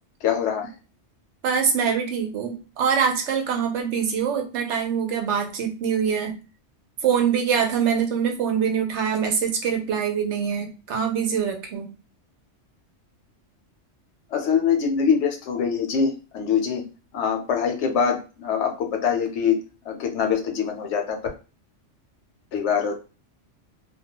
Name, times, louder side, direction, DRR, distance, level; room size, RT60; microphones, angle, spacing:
voice 1, 0.2-0.7 14.3-16.8 17.1-19.6 19.9-21.2 22.5-23.0, left 7 dB, 75° left, 4 dB, 0.9 m, -23 dB
voice 2, 1.4-6.3 7.0-11.9, right 7 dB, 70° right, 3 dB, 0.9 m, -24 dB
2.2 x 2.2 x 2.8 m, 0.32 s
omnidirectional pair, 1.3 m